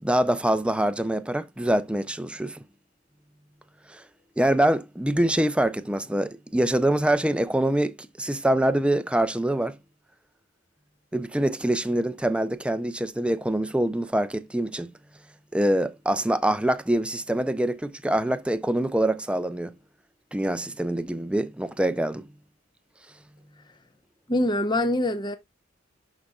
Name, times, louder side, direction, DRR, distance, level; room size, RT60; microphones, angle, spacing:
voice 1, 0.0-2.6 3.9-4.0 4.4-9.7 11.1-14.9 15.5-19.7 20.3-22.2, right 1 dB, 5° right, 0.5 m, -25 dB
voice 2, 24.3-25.4, left 1 dB, 20° left, 0.7 m, -24 dB
11.5 x 4.2 x 2.3 m
head